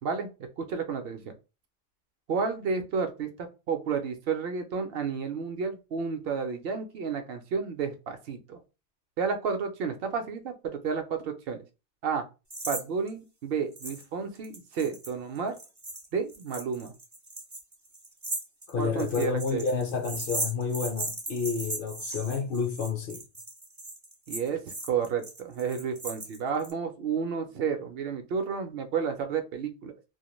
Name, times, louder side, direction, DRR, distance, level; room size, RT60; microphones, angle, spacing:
voice 1, 0.0-1.3 2.3-8.6 9.2-11.6 12.0-12.2 12.7-15.5 16.1-16.9 18.8-19.6 24.3-29.9, right 6 dB, 60° right, 0.7 m, -31 dB
sound 1, 12.5-12.8 13.1-13.2 13.8-14.0 14.3-26.7, right 2 dB, 25° right, 0.3 m, -37 dB
voice 2, 18.7-23.2, left 5 dB, 60° left, 0.6 m, -30 dB
2.3 x 2.1 x 3.0 m
omnidirectional pair, 1.2 m